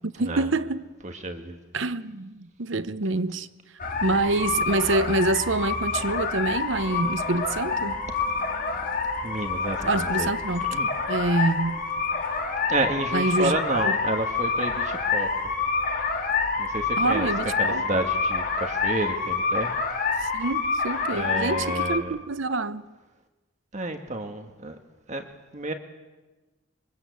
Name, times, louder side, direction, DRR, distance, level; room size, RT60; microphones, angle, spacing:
voice 1, 0.2-0.8 1.7-3.5 4.0-8.0 9.9-10.6 11.1-11.8 13.1-14.0 17.0-17.8 20.2-22.9, right 2 dB, 65° right, 0.9 m, -26 dB
voice 2, 1.0-1.6 9.2-10.3 10.7-10.9 12.7-15.3 16.6-17.3 17.6-19.7 21.1-22.1 23.7-24.8 25.1-25.3 25.5-25.7, right 2 dB, 35° right, 1.5 m, -30 dB
sound 1, 3.8-22.0, left 4 dB, 45° left, 2.4 m, -27 dB
sound 2, 6.7-21.7, equal, 5° left, 4.5 m, -46 dB
26.0 x 23.0 x 8.2 m
head